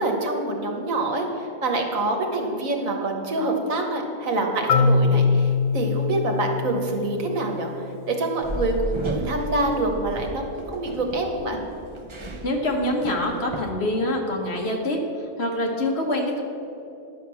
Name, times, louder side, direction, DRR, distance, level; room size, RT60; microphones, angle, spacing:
voice 1, 0.0-7.7 8.1-11.6, right 2 dB, 80° right, 2 dB, 1.8 m, -26 dB
Marimba xylophone, 4.7-8.6, left 4 dB, 80° left, 1.0 m, -23 dB
sound 1, 8.4-13.6, right 2 dB, 25° right, 0.7 m, -34 dB
voice 2, 12.4-15.0 15.4-16.4, left 1 dB, 50° left, 1 dB, 1.6 m, -25 dB
11.0 x 6.1 x 7.0 m, 2.8 s
omnidirectional pair, 1.4 m